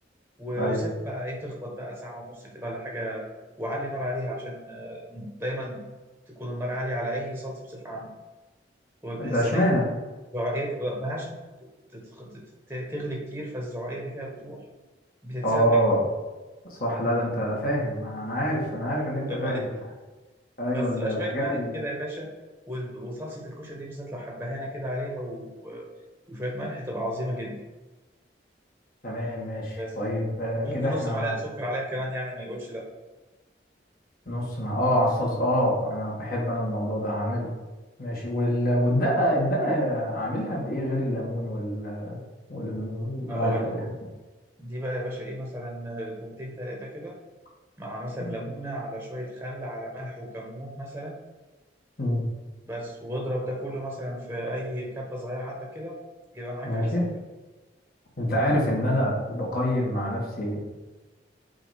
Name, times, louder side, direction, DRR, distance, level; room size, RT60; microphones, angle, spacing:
voice 1, 0.4-3.2 3.6-5.8 6.3-8.1 9.0-9.6 10.3-11.3 11.6-14.6 15.2-15.8 19.3-19.6 20.7-22.3 22.7-25.8 26.3-27.6 29.8-29.9 30.6-32.8 43.3-43.7 44.6-47.1 47.8-51.1 52.7-56.0 56.3-56.9, equal, 10° right, -1 dB, 1.0 m, -33 dB
voice 2, 9.2-9.9 15.4-16.0 16.7-19.6 20.6-21.7 29.0-31.4 34.3-37.5 38.0-42.2 42.5-43.8 48.2-48.3 52.0-52.2 56.6-57.1 58.2-60.6, equal, 50° left, -3 dB, 1.9 m, -26 dB
8.3 x 2.8 x 5.0 m, 1.2 s
head